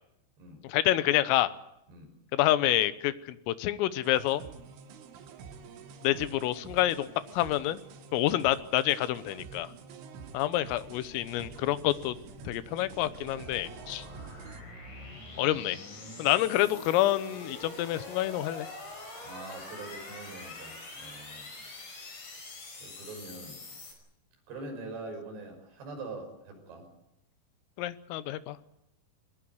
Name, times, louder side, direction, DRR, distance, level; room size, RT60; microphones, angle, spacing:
voice 1, 0.6-1.5 2.3-4.4 6.0-7.1 7.3-7.8 8.1-9.7 10.3-12.2 12.5-14.1 15.4-15.8 16.2-18.7 27.8-28.6, left 14 dB, 85° left, 14 dB, 3.7 m, -27 dB
sound 1, 4.0-14.6, right 5 dB, 75° right, 4.2 m, -48 dB
sound 2, 10.9-23.9, left 2 dB, 40° left, 6.7 m, -45 dB
voice 2, 19.2-21.5 22.8-23.6 24.5-26.9, right 3 dB, 55° right, 3 dB, 8.1 m, -43 dB
22.0 x 19.5 x 9.5 m, 0.82 s
omnidirectional pair, 5.8 m